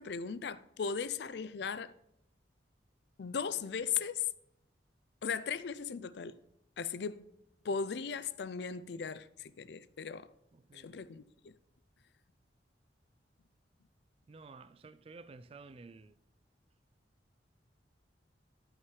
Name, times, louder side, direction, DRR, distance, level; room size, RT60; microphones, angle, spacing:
voice 1, 0.0-1.9 3.2-4.3 5.2-6.4 6.8-7.3 7.6-10.3 10.7-11.6, left 6 dB, 65° left, 0.4 m, -37 dB
voice 2, 10.5-11.0 14.3-16.2, right 4 dB, 35° right, 0.3 m, -53 dB
11.0 x 5.8 x 4.7 m
head